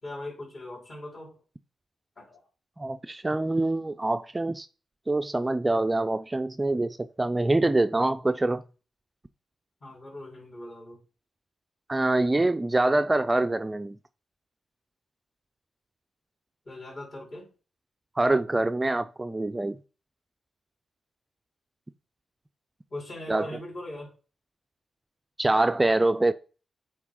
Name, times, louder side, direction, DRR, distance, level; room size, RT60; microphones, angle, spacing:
voice 1, 0.0-1.4 2.2-2.5 9.8-11.0 16.7-17.5 22.9-24.1, left 1 dB, 45° left, 4.1 m, -40 dB
voice 2, 2.8-4.7 5.1-8.6 11.9-14.0 18.2-19.8 23.3-23.5 25.4-26.3, right 2 dB, 20° right, 0.4 m, -25 dB
8.2 x 4.6 x 3.8 m
cardioid pair, 80°, 0 cm